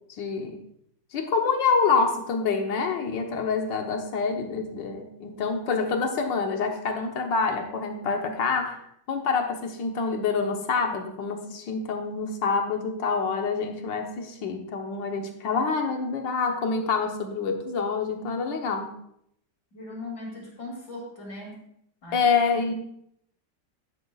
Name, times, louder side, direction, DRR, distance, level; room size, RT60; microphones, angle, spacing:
voice 1, 0.1-0.6 1.1-8.8 9.1-18.9 22.1-22.7, left 5 dB, 85° left, 3 dB, 1.7 m, -26 dB
voice 2, 19.7-21.6 22.0-22.2, left 2 dB, 65° left, -1 dB, 3.5 m, -38 dB
12.5 x 10.5 x 2.4 m, 0.73 s
omnidirectional pair, 1.9 m